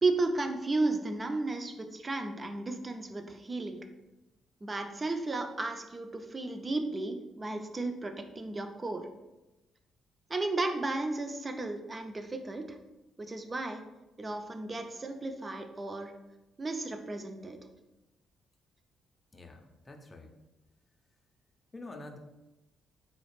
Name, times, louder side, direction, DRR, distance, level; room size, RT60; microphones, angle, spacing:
voice 1, 0.0-3.8 4.6-9.1 10.3-12.8 13.2-13.8 14.2-16.1 16.6-17.6, right 2 dB, 25° right, 6 dB, 0.4 m, -34 dB
voice 2, 19.3-20.4 21.7-22.2, left 2 dB, 25° left, 4 dB, 0.5 m, -47 dB
4.1 x 2.4 x 3.2 m, 1.0 s
cardioid pair, 90°, 0 cm